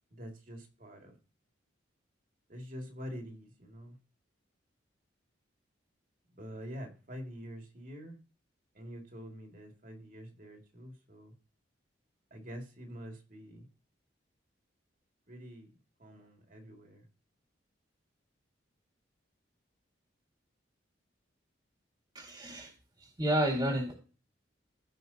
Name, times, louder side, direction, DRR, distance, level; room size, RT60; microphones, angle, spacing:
voice 1, 0.1-1.1 2.5-4.0 6.4-8.1 8.8-11.3 12.3-13.7 15.3-15.7 16.0-17.0, equal, 45° right, 2.3 m, -46 dB
voice 2, 22.1-22.7 23.0-23.9, right 1 dB, 20° right, 2.0 m, -31 dB
15.5 x 5.3 x 2.8 m
head